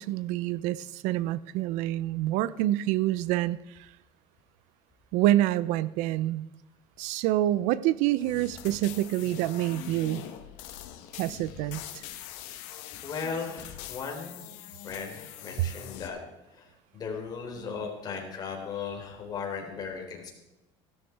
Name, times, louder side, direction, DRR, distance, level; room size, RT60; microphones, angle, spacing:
voice 1, 0.0-3.6 5.1-6.4 7.0-10.2 11.2-11.8, right 14 dB, 70° right, 18 dB, 0.6 m, -27 dB
sound 1, 8.2-16.1, left 12 dB, 85° left, 1.7 m, -43 dB
voice 2, 11.1-11.7 13.0-14.4 14.8-16.2 16.5-20.3, left 5 dB, 30° left, 1 dB, 3.9 m, -37 dB
15.5 x 13.0 x 4.7 m, 0.96 s
cardioid pair, 150°, 12 cm